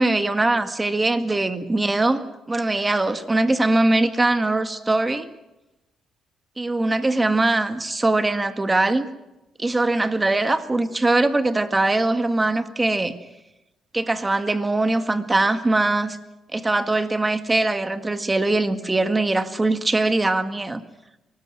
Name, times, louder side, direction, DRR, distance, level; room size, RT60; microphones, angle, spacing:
voice 1, 0.0-2.2 2.5-5.3 6.6-9.1 9.6-13.1 13.9-16.2 16.5-20.8, right 2 dB, 20° right, 9 dB, 1.8 m, -21 dB
23.5 x 20.0 x 7.7 m, 0.95 s
cardioid pair, 90°, 0 cm